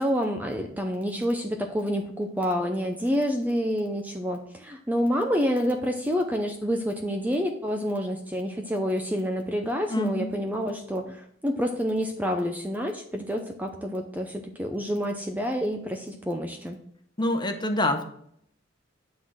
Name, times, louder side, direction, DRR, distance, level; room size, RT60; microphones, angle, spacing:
voice 1, 0.0-16.8, equal, 10° right, 4 dB, 0.6 m, -28 dB
voice 2, 9.9-10.3 17.2-18.0, left 1 dB, 20° left, 6 dB, 1.0 m, -26 dB
9.5 x 3.9 x 6.2 m, 0.68 s
head